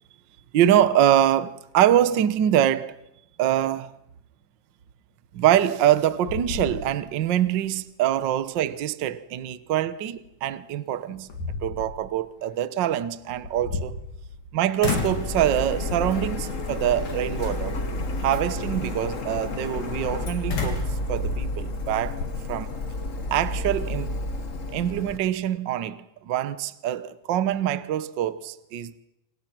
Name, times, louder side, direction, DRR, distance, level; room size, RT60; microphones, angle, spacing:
voice 1, 0.5-3.0 3.4-3.9 5.3-11.3 11.6-14.0 14.5-17.8 18.2-22.2 22.5-22.7 23.3-24.1 24.7-29.0, right 11 dB, 70° right, 1.0 m, -24 dB
sound 1, 5.6-6.0 6.3-7.3 7.7-7.8 10.4-10.5 11.1-12.0 13.3-14.5 14.8-15.3 15.9-16.3 17.0-17.5 20.5-22.3, left 4 dB, 85° left, 4.9 m, -32 dB
Printer, 14.8-25.2, left 2 dB, 40° left, 1.1 m, -31 dB
28.5 x 26.5 x 6.1 m
omnidirectional pair, 3.7 m